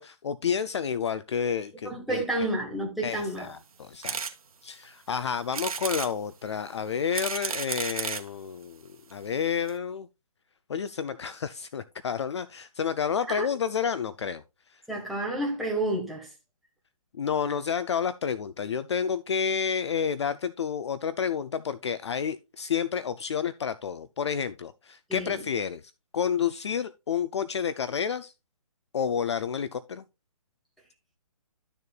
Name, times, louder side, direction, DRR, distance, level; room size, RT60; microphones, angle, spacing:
voice 1, 0.0-2.2 3.0-4.2 4.6-8.8 9.1-10.1 10.7-14.4 17.1-25.8 26.1-28.3 28.9-30.0, left 7 dB, 50° left, 0.4 m, -30 dB
voice 2, 1.8-3.5 13.3-13.5 14.9-16.3 25.1-25.4, right 1 dB, ahead, 1.4 m, -30 dB
sound 1, 4.0-4.3 4.8-4.9 5.5-6.1 6.9-8.3 9.1-9.2 9.4-9.5 9.7-9.8, right 5 dB, 75° right, 1.2 m, -32 dB
12.5 x 6.7 x 2.3 m
hypercardioid pair, 160°, 19 cm